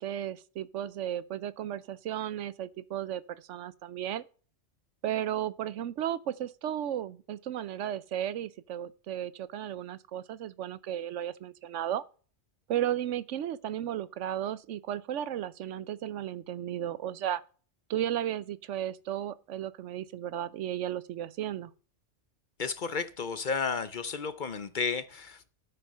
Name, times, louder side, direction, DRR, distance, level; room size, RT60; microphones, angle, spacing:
voice 1, 0.0-4.2 5.0-12.0 12.7-17.4 17.9-21.7, right 11 dB, 80° right, 1.0 m, -34 dB
voice 2, 22.6-25.5, left 5 dB, 50° left, 0.7 m, -32 dB
13.0 x 5.5 x 5.5 m
omnidirectional pair, 1.2 m